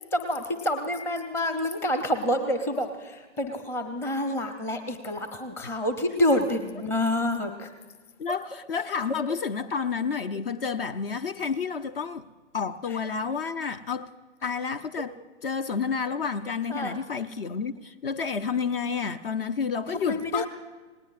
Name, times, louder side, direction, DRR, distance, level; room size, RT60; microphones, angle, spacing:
voice 1, 0.1-7.7 12.9-13.0 16.7-17.0 19.9-20.5, left 1 dB, 5° left, 0.7 m, -28 dB
voice 2, 8.2-12.2 12.5-14.1 14.4-15.1 15.4-20.5, left 6 dB, 50° left, 0.8 m, -30 dB
28.5 x 18.5 x 2.5 m
figure-of-eight pair, 125°, 37 cm